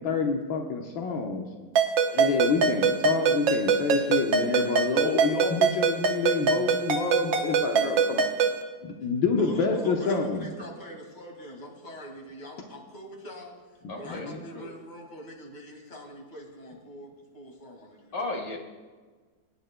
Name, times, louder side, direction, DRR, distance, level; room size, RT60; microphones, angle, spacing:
voice 1, 0.0-1.4 2.1-8.3 8.8-10.5 13.8-14.4, left 4 dB, 75° left, 2 dB, 1.7 m, -28 dB
Ringtone, 1.8-8.6, right 5 dB, 80° right, 1.6 m, -24 dB
voice 2, 9.4-18.3, left 1 dB, 25° left, 1 dB, 2.0 m, -43 dB
voice 3, 13.9-14.8 18.1-18.6, left 2 dB, 50° left, 2 dB, 1.9 m, -35 dB
24.5 x 9.9 x 2.2 m, 1.4 s
omnidirectional pair, 2.1 m